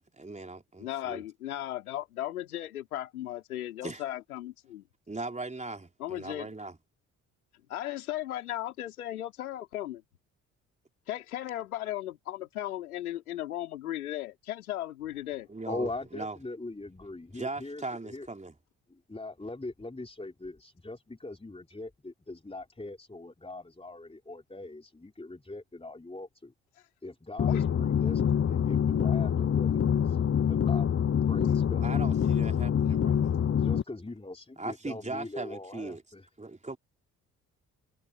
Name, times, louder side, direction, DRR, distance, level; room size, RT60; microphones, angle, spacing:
voice 1, 0.0-1.2 3.8-4.0 5.1-6.8 15.5-16.4 17.3-18.5 31.8-33.4 34.6-36.0 36.4-36.8, right 3 dB, 15° right, 3.5 m, -39 dB
voice 2, 0.8-4.9 6.0-6.5 7.7-10.0 11.1-15.5 27.5-27.6, left 13 dB, 85° left, 4.6 m, -36 dB
voice 3, 15.7-18.3 18.9-26.5 27.0-30.9 31.2-32.0 33.5-36.3, left 2 dB, 15° left, 3.8 m, -41 dB
sound 1, 27.4-33.8, left 8 dB, 35° left, 1.0 m, -25 dB
figure-of-eight pair, 45°, 43 cm